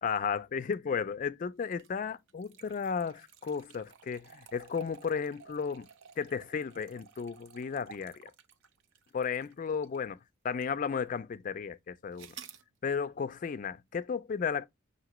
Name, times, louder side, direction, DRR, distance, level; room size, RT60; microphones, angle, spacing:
voice 1, 0.0-5.9 6.2-8.3 9.1-10.2 10.4-12.3 12.8-14.7, left 6 dB, 40° left, 0.3 m, -34 dB
sound 1, 1.7-10.1 10.6-10.7 12.2-12.6, right 7 dB, 70° right, 0.5 m, -54 dB
5.9 x 2.7 x 2.9 m
head